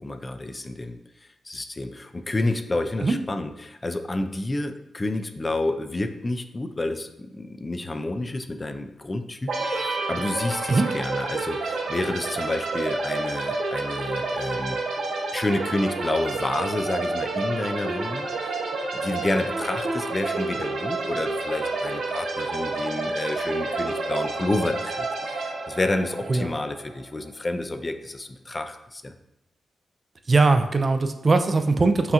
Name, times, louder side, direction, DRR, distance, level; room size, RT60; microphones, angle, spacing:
voice 1, 0.0-14.8 15.3-18.6 18.9-29.1, left 2 dB, 30° left, 8 dB, 0.3 m, -29 dB
sound 1, 9.5-27.1, right 3 dB, 85° right, 0.7 m, -29 dB
voice 2, 30.3-32.1, right 3 dB, 45° right, 7 dB, 0.3 m, -20 dB
5.5 x 2.4 x 2.8 m, 0.87 s
cardioid pair, 65°, 0 cm